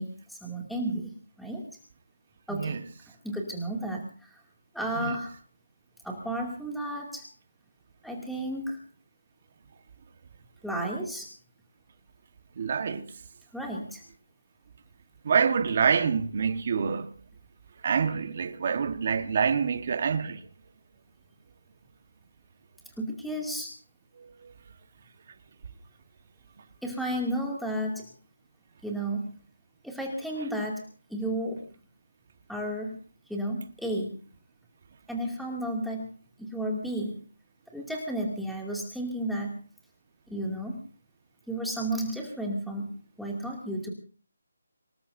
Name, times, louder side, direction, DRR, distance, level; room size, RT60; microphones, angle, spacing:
voice 1, 0.0-1.6 2.5-2.8 3.2-4.4 4.7-5.3 6.0-7.3 8.0-8.8 10.6-11.3 13.5-14.0 23.0-23.7 26.8-28.1 28.8-29.3 29.8-30.8 31.1-31.6 32.5-33.0 33.3-34.2 35.1-36.1 36.4-37.2 37.7-39.6 40.3-40.8 41.5-43.9, right 1 dB, ahead, 2.5 m, -32 dB
voice 2, 2.5-2.8 5.0-5.2 12.6-13.1 15.2-17.1 17.8-20.4, right 6 dB, 40° right, 1.4 m, -26 dB
26.0 x 20.0 x 2.7 m
figure-of-eight pair, 170°, 0 cm